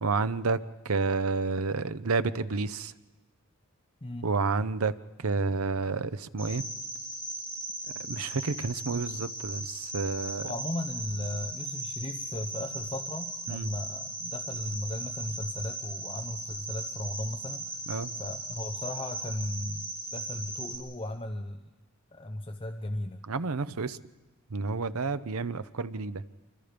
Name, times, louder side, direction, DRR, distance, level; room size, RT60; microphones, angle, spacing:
voice 1, 0.0-2.9 4.2-4.9 5.2-6.6 8.1-10.5 13.5-13.7 17.9-18.1 23.3-24.0 24.5-26.2, right 4 dB, 80° right, 13 dB, 0.8 m, -30 dB
Cricket, 6.4-20.8, right 2 dB, 10° right, 5.8 m, -38 dB
voice 2, 10.4-21.6 22.1-23.2, left 1 dB, 25° left, 4 dB, 0.8 m, -36 dB
27.0 x 25.0 x 5.2 m, 1.1 s
head